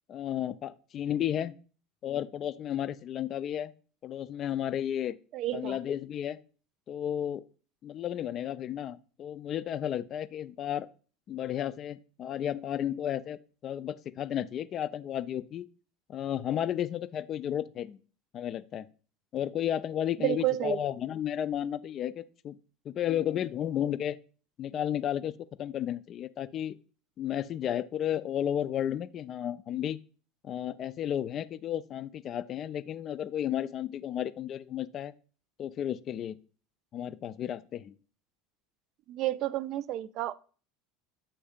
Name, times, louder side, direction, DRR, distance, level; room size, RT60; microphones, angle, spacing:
voice 1, 0.1-1.6 2.0-3.7 4.0-5.2 5.5-6.4 6.9-7.4 7.8-10.9 11.3-15.7 16.1-18.0 18.3-18.9 19.3-22.5 22.9-24.2 24.6-25.3 25.6-26.8 27.2-30.0 30.4-35.1 35.6-36.4 36.9-37.9, left 10 dB, 45° left, 0.3 m, -33 dB
voice 2, 5.3-5.8 20.2-20.8 39.1-40.4, right 15 dB, 55° right, 0.3 m, -30 dB
7.2 x 2.6 x 5.0 m
supercardioid pair, 105°, 0 cm